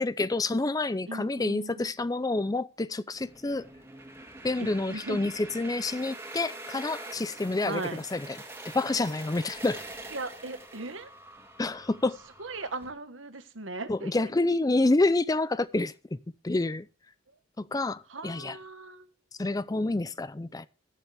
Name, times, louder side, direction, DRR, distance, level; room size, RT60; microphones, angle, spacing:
voice 1, 0.0-3.7 4.4-8.4 8.7-9.8 11.6-12.2 13.9-16.2 16.4-16.9 17.6-18.6 19.4-20.7, left 2 dB, 20° left, 0.4 m, -28 dB
voice 2, 1.1-1.9 4.6-5.2 7.7-8.0 10.1-11.1 12.4-14.1 18.1-19.1, right 2 dB, 75° right, 1.3 m, -38 dB
sound 1, 3.1-12.9, right 2 dB, 10° right, 2.2 m, -45 dB
21.0 x 7.2 x 3.4 m
head